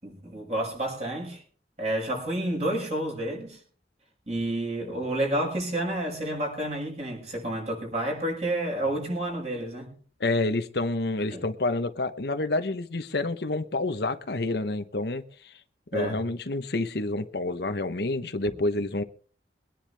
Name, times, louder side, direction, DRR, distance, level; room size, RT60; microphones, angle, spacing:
voice 1, 0.0-1.4 1.8-3.6 4.3-9.9 11.3-11.4 15.9-16.2, right 1 dB, 35° right, 1 dB, 6.7 m, -30 dB
voice 2, 10.2-15.5 15.9-19.0, left 2 dB, 60° left, 9 dB, 0.9 m, -28 dB
23.5 x 10.0 x 3.4 m, 0.43 s
head